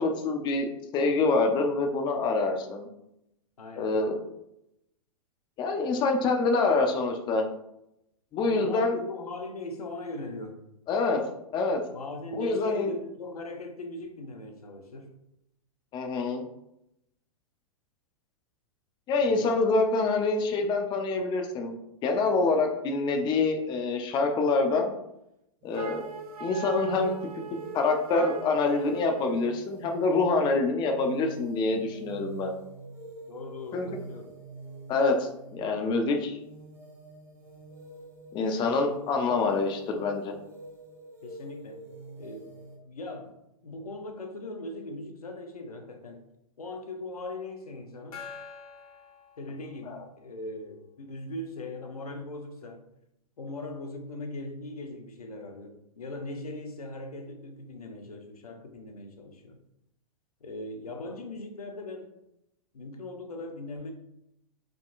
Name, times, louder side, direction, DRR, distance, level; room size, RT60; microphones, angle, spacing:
voice 1, 0.0-2.9 3.8-4.2 5.6-7.5 8.3-9.0 10.9-11.2 11.5-11.8 12.3-12.9 15.9-16.4 19.1-25.0 25.6-26.0 26.4-27.1 27.7-32.5 33.7-33.9 34.9-36.4 38.3-40.3 49.9-50.0, left 3 dB, 25° left, 3 dB, 0.5 m, -26 dB
voice 2, 3.6-4.0 8.4-10.6 11.9-15.1 19.2-19.6 33.3-34.3 41.2-41.8 42.2-42.6 42.9-43.4 43.6-46.2 46.6-48.3 49.4-52.8 53.4-59.6 60.4-62.1 62.7-63.9, left 2 dB, 90° left, 4 dB, 0.7 m, -39 dB
sound 1, 25.6-42.8, right 2 dB, 15° right, 0.9 m, -47 dB
Wind instrument woodwind instrument, 25.7-29.4, right 8 dB, 85° right, 0.4 m, -41 dB
Gong, 48.1-50.1, left 6 dB, 75° left, 1.1 m, -46 dB
3.7 x 3.6 x 2.4 m, 0.82 s
hypercardioid pair, 120°, 19 cm